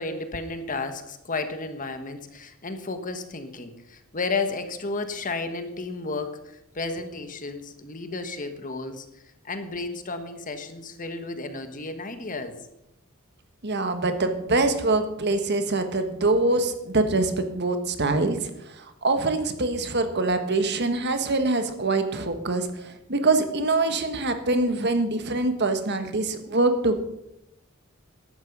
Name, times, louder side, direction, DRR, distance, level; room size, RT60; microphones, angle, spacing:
voice 1, 0.0-12.6, left 3 dB, 40° left, 8 dB, 1.4 m, -33 dB
voice 2, 13.6-27.0, right 2 dB, 50° right, 8 dB, 1.5 m, -24 dB
14.5 x 11.0 x 5.4 m, 0.84 s
head